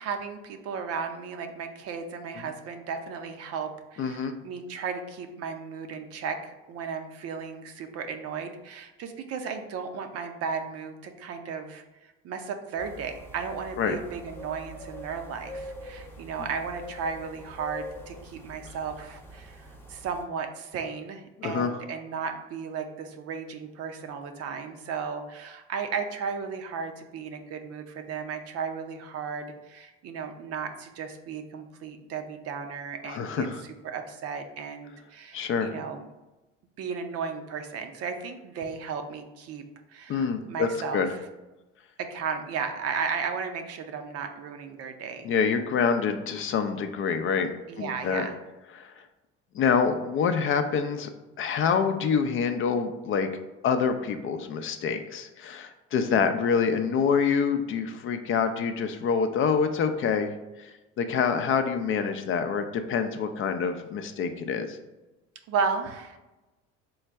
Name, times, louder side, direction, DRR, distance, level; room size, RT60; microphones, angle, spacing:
voice 1, 0.0-33.5 33.8-36.1 36.8-39.6 39.9-41.2 42.0-45.3 47.7-48.4 65.5-66.2, right 6 dB, 55° right, 6 dB, 0.6 m, -35 dB
voice 2, 4.0-4.3 13.8-13.9 21.4-21.8 33.0-33.6 35.3-35.7 40.1-41.1 45.2-47.5 47.8-48.3 48.8-48.9 49.5-51.1 51.4-53.3 53.6-60.3 60.6-64.8, left 6 dB, 45° left, 8 dB, 0.4 m, -26 dB
sound 1, 12.8-20.2, equal, 10° left, 0.7 m, -44 dB
3.8 x 2.2 x 4.4 m, 1.1 s
supercardioid pair, 90°, 29 cm